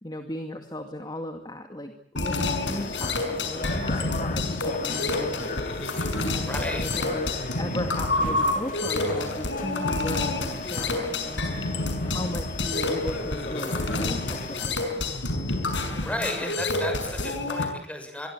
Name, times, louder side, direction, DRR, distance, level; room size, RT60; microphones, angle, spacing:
voice 1, 0.0-5.6 6.3-15.0 15.9-16.5, left 1 dB, 25° left, 6 dB, 2.2 m, -36 dB
sound 1, 2.2-17.6, left 2 dB, 90° left, 6.1 m, -28 dB
sound 2, 2.4-14.7, left 2 dB, 50° left, 3.6 m, -37 dB
voice 2, 6.4-6.9 16.0-18.3, left 1 dB, 5° left, 5 dB, 7.1 m, -33 dB
25.5 x 23.0 x 8.1 m, 0.66 s
head